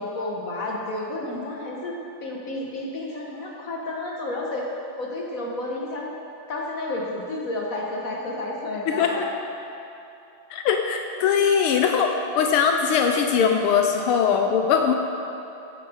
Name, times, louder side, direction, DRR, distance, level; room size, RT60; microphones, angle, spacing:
voice 1, 0.0-1.9 2.2-4.7 5.0-6.1 6.5-9.3 11.8-12.6, left 2 dB, 40° left, -2 dB, 1.9 m, -31 dB
voice 2, 10.5-12.1 12.4-14.9, left 7 dB, 85° left, 4 dB, 1.6 m, -21 dB
15.5 x 8.9 x 4.8 m, 2.9 s
omnidirectional pair, 2.4 m